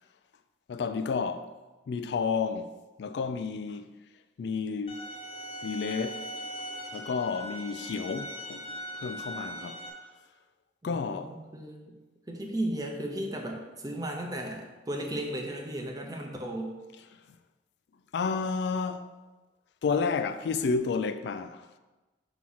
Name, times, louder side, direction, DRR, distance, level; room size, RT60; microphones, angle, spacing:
voice 1, 0.7-1.5 1.9-2.7 3.0-3.8 4.4-5.0 5.6-6.2 6.9-8.7 8.9-9.8 10.8-11.3 18.1-19.1 19.8-21.6, left 5 dB, 65° left, 0.3 m, -31 dB
sound 1, 4.9-9.9, equal, 30° left, 0.9 m, -40 dB
voice 2, 10.8-11.9 12.3-16.7, right 1 dB, 20° right, 0.7 m, -35 dB
6.1 x 3.0 x 5.5 m
head